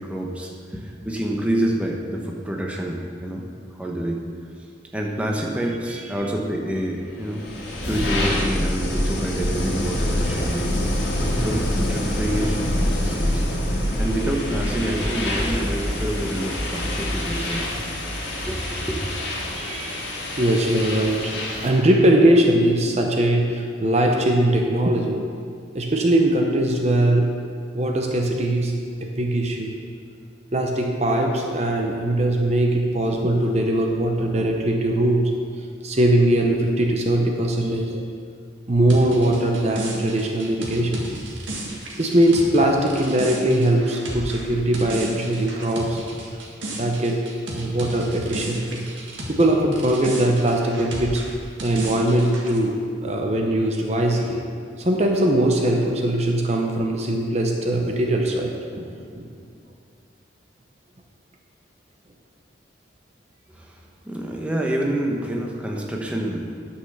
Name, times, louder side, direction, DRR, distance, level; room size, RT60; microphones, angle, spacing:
voice 1, 0.0-3.4 3.7-4.2 4.9-7.4 7.8-10.7 11.4-17.7 18.4-19.0 63.5-63.8 64.1-66.5, right 1 dB, 5° right, -1 dB, 0.9 m, -27 dB
sound 1, 7.2-21.8, left 1 dB, 65° left, 1.8 m, -26 dB
voice 2, 19.5-21.3 21.6-25.2 25.7-27.4 27.7-28.7 29.0-29.8 30.5-35.3 35.8-38.0 38.7-41.0 42.0-46.0 46.7-47.2 47.5-48.9 49.3-51.3 51.6-54.4 54.8-59.3, right 1 dB, 35° right, 1 dB, 0.7 m, -21 dB
sound 2, 38.9-49.5 49.7-52.6, right 1 dB, 85° right, 1.8 m, -34 dB
9.7 x 5.6 x 6.5 m, 2.3 s
head